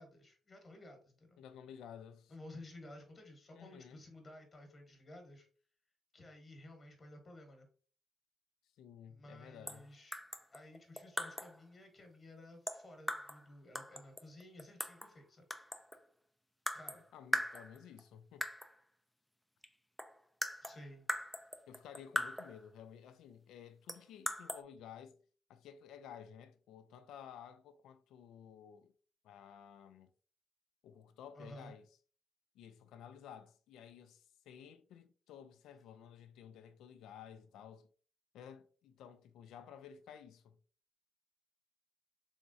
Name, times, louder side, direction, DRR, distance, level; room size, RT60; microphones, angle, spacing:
voice 1, 0.0-1.4 2.3-5.5 6.1-7.7 9.1-10.2 10.5-15.5 16.7-17.1 20.6-21.1 31.3-31.7, left 1 dB, 35° left, 1.2 m, -54 dB
voice 2, 1.4-2.3 3.5-4.0 8.8-9.9 17.1-18.4 21.7-25.2 25.5-28.9 29.2-30.1 30.8-31.9 32.5-37.9 38.3-40.6, left 8 dB, 85° left, 0.4 m, -54 dB
sound 1, 9.7-9.9 10.1-11.6 12.7-13.4 13.7-15.1 15.5-16.1 16.7-17.0 17.3-18.0 18.4-18.7 19.6-19.7 20.0-22.6 23.9-24.6, left 1 dB, 5° left, 0.3 m, -40 dB
3.5 x 3.1 x 2.6 m
cardioid pair, 90°, 0 cm